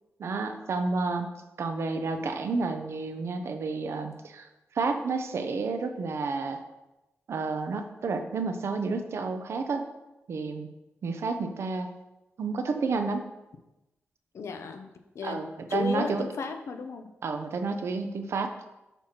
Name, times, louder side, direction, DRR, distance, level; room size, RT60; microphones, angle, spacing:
voice 1, 0.2-1.3 1.6-4.5 4.7-6.6 7.3-9.8 10.3-10.7 11.0-11.9 12.4-13.3 15.2-16.3 17.2-18.5, right 4 dB, 65° right, 7 dB, 0.6 m, -30 dB
voice 2, 14.3-14.9 15.1-15.4 15.7-17.1, left 5 dB, 70° left, 7 dB, 0.6 m, -34 dB
6.8 x 3.0 x 5.7 m, 0.98 s
wide cardioid pair, 125°, 5 cm